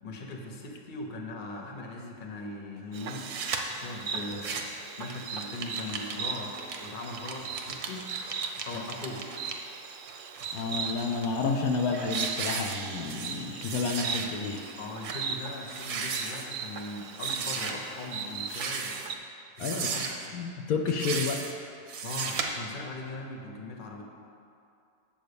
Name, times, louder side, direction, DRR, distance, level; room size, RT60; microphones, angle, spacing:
voice 1, 0.0-8.1 8.6-9.3 14.8-19.0 19.6-20.1 20.3-20.4 22.0-24.0, left 2 dB, 40° left, 2 dB, 0.9 m, -40 dB
Insect, 2.9-19.2, right 5 dB, 65° right, 0.8 m, -39 dB
sound 1, 3.1-3.6 4.2-4.8 5.1-9.5 10.1-11.3 11.7-11.8 12.1-13.4 13.6-14.3 14.6-14.7 15.0-15.2 15.6-16.5 17.2-17.7 18.4-19.1 19.6-20.3 20.9-21.5 21.9-22.4, right 5 dB, 80° right, 1.3 m, -35 dB
voice 2, 10.5-14.7 19.6-19.9 20.3-21.5, left 4 dB, 75° left, 4 dB, 1.0 m, -30 dB
7.8 x 5.6 x 6.9 m, 2.5 s
omnidirectional pair, 1.6 m